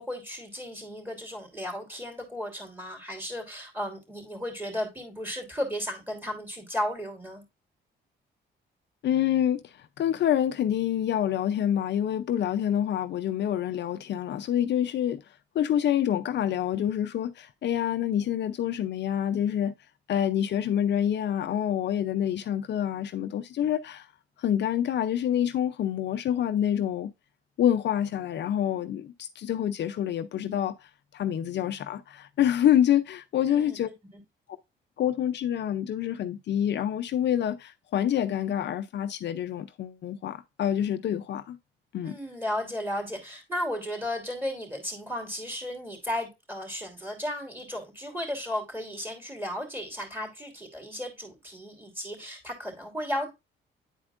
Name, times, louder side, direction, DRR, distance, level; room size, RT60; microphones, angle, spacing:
voice 1, 0.0-7.4 33.4-33.8 42.0-53.3, left 1 dB, 10° right, 3.0 m, -34 dB
voice 2, 9.0-15.2 15.5-19.7 20.1-24.1 24.4-27.1 27.6-33.9 35.0-41.6 41.9-42.2, left 10 dB, 60° left, 0.5 m, -27 dB
9.8 x 4.4 x 2.5 m
cardioid pair, 90°, 20 cm